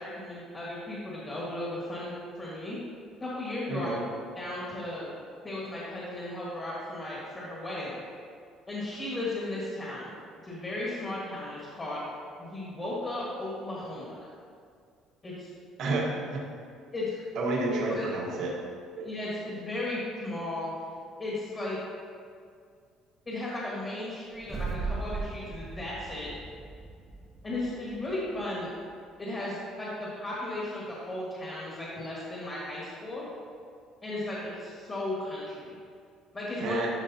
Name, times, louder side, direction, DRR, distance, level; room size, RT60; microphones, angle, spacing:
voice 1, 0.0-2.1 2.4-2.8 3.2-4.0 4.3-5.1 5.4-8.0 8.7-10.1 10.4-12.0 12.4-14.2 15.2-15.5 16.9-17.2 17.7-18.1 19.0-20.7 21.2-21.8 23.2-26.3 27.4-28.7 29.2-33.2 34.0-35.7 36.3-36.8, left 2 dB, 25° left, -6 dB, 1.7 m, -35 dB
voice 2, 3.7-4.0 15.8-16.4 17.3-18.5 19.0-19.1 36.6-36.9, right 2 dB, 60° right, -3 dB, 1.4 m, -30 dB
sound 1, 24.3-28.7, right 4 dB, 20° right, 0.9 m, -38 dB
11.5 x 4.9 x 2.8 m, 2.3 s
cardioid pair, 140°, 0 cm